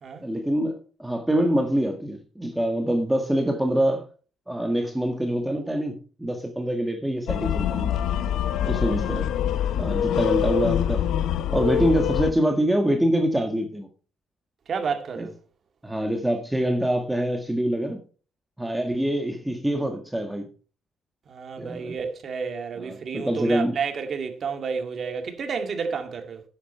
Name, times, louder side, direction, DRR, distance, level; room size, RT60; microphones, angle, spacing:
voice 1, 0.2-4.0 4.5-8.0 8.6-9.3 9.8-11.0 11.5-13.9 15.1-15.3 15.8-18.0 18.6-20.5 21.6-21.9 22.8-23.8, right 1 dB, 5° right, 1.7 m, -25 dB
sound 1, 7.3-12.3, left 10 dB, 80° left, 0.8 m, -25 dB
voice 2, 8.6-9.1 10.0-10.3 14.7-15.3 21.3-26.4, right 6 dB, 50° right, 2.2 m, -31 dB
10.0 x 8.5 x 4.4 m
cardioid pair, 90°, 0 cm